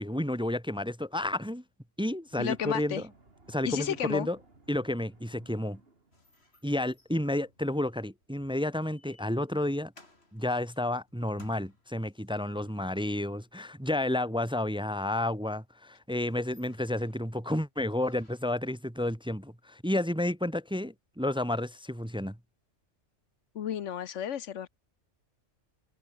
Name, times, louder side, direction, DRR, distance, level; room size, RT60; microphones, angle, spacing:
voice 1, 0.0-1.6 2.0-3.0 3.5-4.4 4.7-5.8 6.6-9.9 10.3-22.4, left 1 dB, 5° right, 1.0 m, -31 dB
sound 1, 2.3-6.8, right 3 dB, 50° right, 3.4 m, -58 dB
voice 2, 2.4-3.0 3.6-4.3 23.5-24.7, left 9 dB, 75° left, 1.2 m, -32 dB
sound 2, 6.1-13.2 15.5-15.6 16.0-17.3 17.9-18.7, left 2 dB, 55° left, 4.7 m, -61 dB
omnidirectional pair, 1.3 m